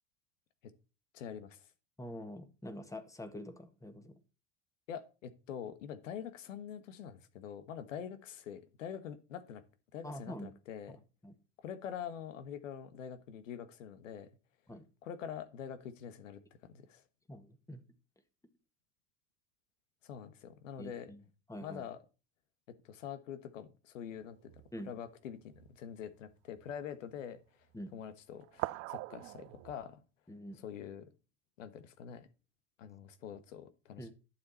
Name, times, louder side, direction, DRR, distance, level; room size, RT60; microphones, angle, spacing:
voice 1, 1.1-1.7 4.9-9.6 9.9-11.0 11.6-14.3 15.0-17.0 20.0-21.1 21.6-22.0 22.7-24.5 24.8-27.4 27.9-30.0 30.6-31.1 31.6-32.3 32.8-34.1, left 8 dB, 80° left, 1.4 m, -45 dB
voice 2, 2.0-4.1 10.0-10.5 10.9-11.3 14.7-14.9 17.3-17.8 20.8-21.2 21.5-21.8 24.7-24.9 27.7-27.9 30.3-30.6 34.0-34.1, equal, 10° left, 1.7 m, -45 dB
sound 1, 24.1-24.9 25.5-25.7 26.6-26.7 28.4-29.8, right 21 dB, 40° right, 0.4 m, -42 dB
11.5 x 7.2 x 4.3 m
hypercardioid pair, 85°, 38 cm